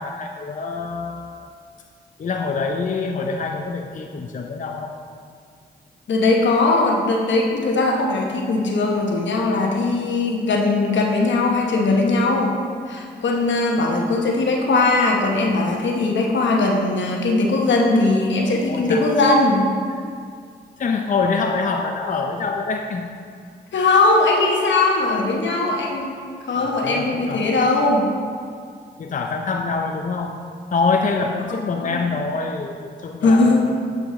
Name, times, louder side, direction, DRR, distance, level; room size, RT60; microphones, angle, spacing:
voice 1, 0.0-1.5 2.2-5.0 18.7-19.1 20.8-23.1 23.7-24.0 26.5-27.5 29.0-30.4 30.7-33.8, left 4 dB, 45° left, 3 dB, 0.5 m, -25 dB
voice 2, 6.1-12.6 12.9-19.7 23.7-26.1 26.5-28.1 31.7-32.0 33.2-33.6, left 2 dB, 75° left, 0 dB, 1.0 m, -19 dB
8.1 x 4.8 x 3.7 m, 2.1 s
cardioid pair, 50°, 19 cm